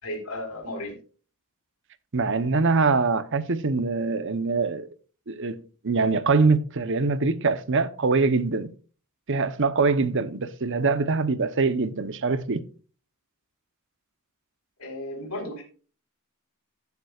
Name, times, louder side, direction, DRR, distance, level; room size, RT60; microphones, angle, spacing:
voice 1, 0.0-1.0 14.8-15.6, left 1 dB, 85° left, 4.4 m, -34 dB
voice 2, 2.1-4.9 5.3-8.7 9.3-12.6, right 4 dB, 55° right, 0.9 m, -23 dB
16.0 x 7.2 x 2.4 m
head